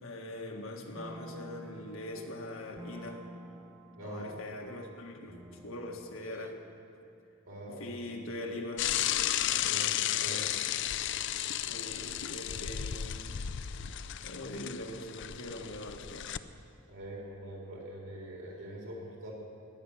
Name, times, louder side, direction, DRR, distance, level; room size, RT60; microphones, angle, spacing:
voice 1, 0.0-3.2 4.0-6.5 7.7-8.9 10.3-10.6 11.7-13.4 14.2-16.3, left 1 dB, 80° left, 2 dB, 1.7 m, -42 dB
sound 1, 0.9-6.9, right 1 dB, 10° right, 0.6 m, -50 dB
voice 2, 3.9-4.4 7.5-7.9 9.4-10.5 16.9-19.3, right 1 dB, 80° right, -3 dB, 4.1 m, -44 dB
Bicycle / Mechanisms, 8.8-16.4, left 11 dB, 60° left, 0.4 m, -33 dB
17.5 x 10.0 x 6.5 m, 2.4 s
head